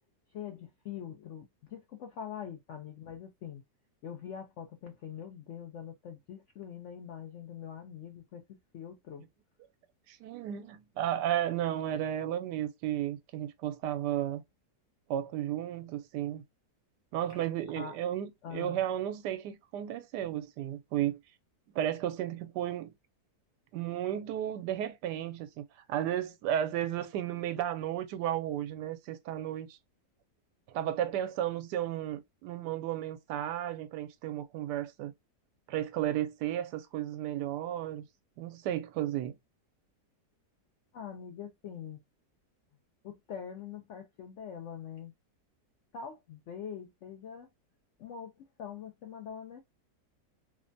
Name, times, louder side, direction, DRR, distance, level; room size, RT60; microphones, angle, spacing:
voice 1, 0.3-3.6 4.0-8.4 8.7-9.3 17.3-17.5 17.8-17.9 18.4-18.8 40.9-42.0 43.0-45.1 45.9-47.5 48.0-48.3 48.6-49.6, left 8 dB, 75° left, 0.6 m, -43 dB
voice 2, 10.1-14.4 15.1-16.4 17.1-21.2 21.7-22.9 23.7-29.8 30.7-35.1 35.7-38.0 38.4-39.3, right 11 dB, 80° right, 1.2 m, -33 dB
3.2 x 2.1 x 2.5 m
omnidirectional pair, 1.8 m